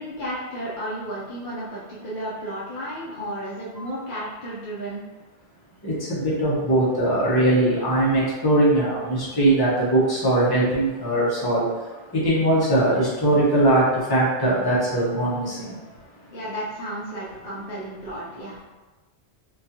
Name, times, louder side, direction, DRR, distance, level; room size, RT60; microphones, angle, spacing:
voice 1, 0.0-5.0 16.3-18.6, equal, 50° left, -8 dB, 0.8 m, -33 dB
voice 2, 5.8-15.9, right 1 dB, 25° left, -7 dB, 0.9 m, -21 dB
3.9 x 2.5 x 2.8 m, 1.2 s
omnidirectional pair, 1.1 m